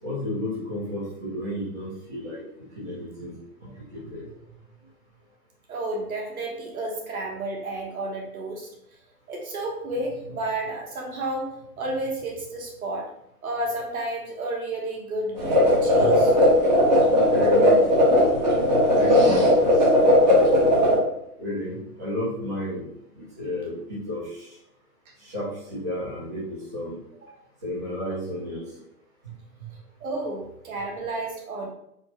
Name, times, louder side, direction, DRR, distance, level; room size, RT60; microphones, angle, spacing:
voice 1, 0.0-2.4 2.7-3.3 3.6-4.2 16.0-16.1 17.3-18.2 18.9-19.7 20.0-20.8 21.4-22.8 23.1-24.5 25.2-27.0 27.6-28.6, left 1 dB, 10° right, -11 dB, 0.7 m, -32 dB
voice 2, 5.7-8.7 9.3-13.1 13.4-16.3 27.2-27.3 30.0-31.7, right 2 dB, 65° right, 0 dB, 1.2 m, -31 dB
sound 1, 15.4-21.0, left 1 dB, 30° right, 1.1 m, -17 dB
4.5 x 2.2 x 4.0 m, 0.77 s
hypercardioid pair, 180°, 46 cm